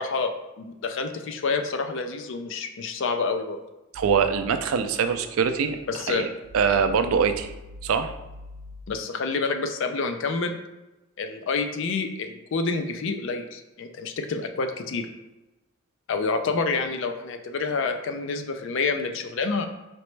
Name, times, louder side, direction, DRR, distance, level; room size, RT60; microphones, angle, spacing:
voice 1, 0.0-3.6 5.9-6.2 8.9-10.6 11.2-15.1 16.1-19.7, left 4 dB, 60° left, 7 dB, 0.4 m, -28 dB
voice 2, 3.9-6.3 6.5-7.5 7.8-8.1, right 6 dB, 75° right, 9 dB, 0.4 m, -23 dB
4.3 x 3.0 x 3.2 m, 1.0 s
head